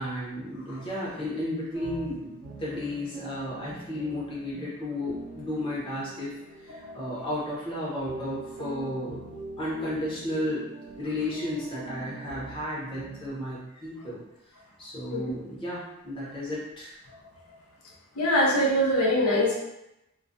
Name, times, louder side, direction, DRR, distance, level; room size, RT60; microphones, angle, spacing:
voice 1, 0.0-6.3 6.6-9.2 9.6-10.7 11.0-14.2 14.8-17.0, left 1 dB, 25° left, -7 dB, 0.6 m, -33 dB
sound 1, 1.7-13.3, right 2 dB, 75° right, 0.6 m, -44 dB
voice 2, 18.2-19.6, equal, 85° left, -3 dB, 0.6 m, -24 dB
2.3 x 2.1 x 2.5 m, 0.88 s
head